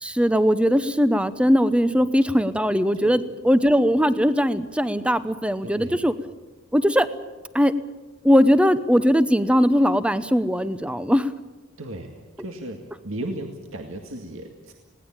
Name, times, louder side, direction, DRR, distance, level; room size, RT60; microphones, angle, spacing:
voice 1, 0.0-6.1 6.7-7.1 7.5-7.7 8.2-11.3, equal, 5° right, 13 dB, 0.8 m, -20 dB
voice 2, 5.6-6.1 11.8-14.7, right 1 dB, 70° right, 3 dB, 2.0 m, -35 dB
20.5 x 17.5 x 8.9 m, 1.2 s
head